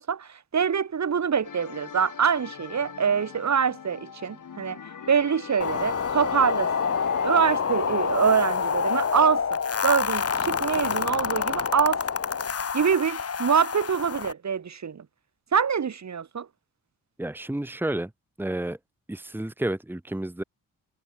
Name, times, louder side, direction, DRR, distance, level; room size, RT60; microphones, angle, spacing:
voice 1, 0.0-4.8 5.1-6.9 7.2-12.0 12.7-15.0 15.5-16.5, right 7 dB, 55° right, 2.2 m, -25 dB
sound 1, 1.4-7.3, left 7 dB, 65° left, 4.3 m, -42 dB
sound 2, 5.6-14.3, left 6 dB, 45° left, 1.7 m, -27 dB
voice 2, 17.2-18.1 18.4-18.8 19.1-20.4, right 1 dB, 5° right, 1.5 m, -30 dB
cardioid pair, 95°, 34 cm